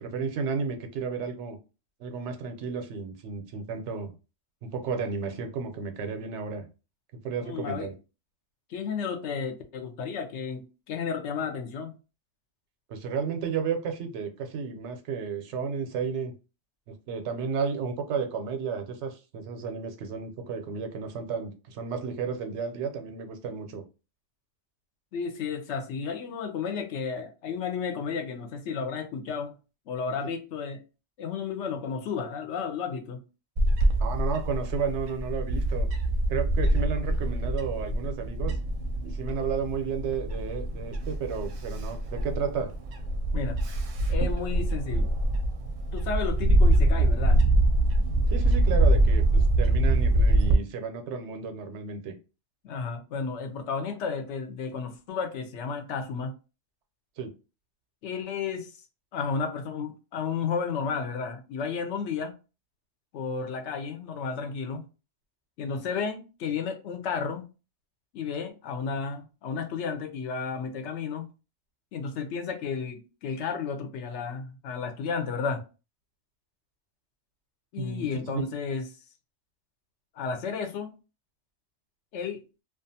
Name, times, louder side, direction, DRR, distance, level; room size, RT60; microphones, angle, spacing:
voice 1, 0.0-1.6 2.0-4.1 4.6-6.7 7.2-7.9 12.9-16.3 16.9-23.8 34.0-35.9 36.3-38.6 39.0-42.7 48.3-52.2 57.2-57.3 77.8-78.1 78.3-78.5, right 5 dB, 90° right, 0.9 m, -32 dB
voice 2, 7.4-7.9 8.7-11.9 25.1-29.5 29.9-30.8 31.2-33.2 43.3-43.6 44.1-45.1 45.9-47.4 52.6-56.3 58.0-58.7 59.1-62.4 63.1-64.8 65.6-67.5 68.1-71.3 71.9-75.6 77.7-78.9 80.1-80.9 82.1-82.4, left 5 dB, 85° left, 0.9 m, -32 dB
Bird / Wind, 33.6-50.5, right 1 dB, 60° right, 0.6 m, -24 dB
2.4 x 2.3 x 2.6 m
omnidirectional pair, 1.2 m